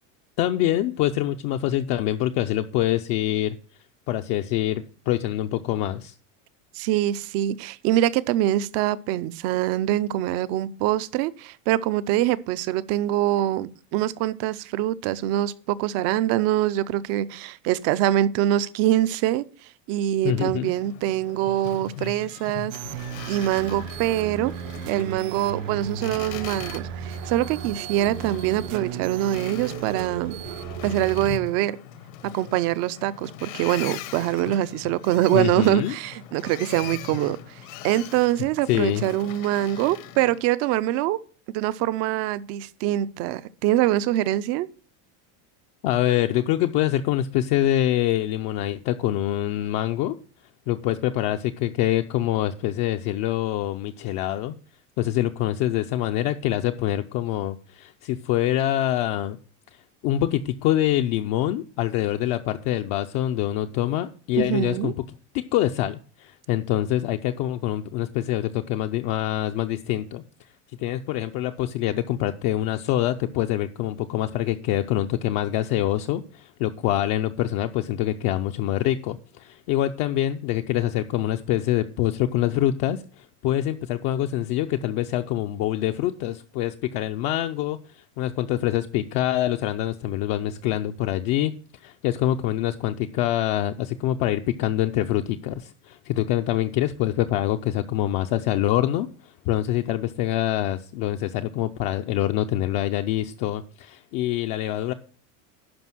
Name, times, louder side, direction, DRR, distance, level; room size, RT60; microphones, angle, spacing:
voice 1, 0.4-3.5 4.1-6.1 20.2-20.7 35.3-35.9 38.7-39.0 45.8-50.1 50.7-54.5 55.0-59.4 59.7-64.9 65.5-70.5 70.8-91.5 91.8-104.9, left 13 dB, 45° left, 0.5 m, -25 dB
voice 2, 6.7-19.4 19.9-22.8 23.3-24.5 24.9-30.3 30.8-31.8 32.3-37.4 37.8-41.2 41.5-44.7 64.4-64.9, right 13 dB, 40° right, 0.5 m, -24 dB
Boat Water vehicle, 20.6-40.4, left 10 dB, 70° left, 1.3 m, -41 dB
sound 1, 22.7-31.4, right 9 dB, 70° right, 0.8 m, -35 dB
11.5 x 5.0 x 6.1 m
cardioid pair, 170°, 40 cm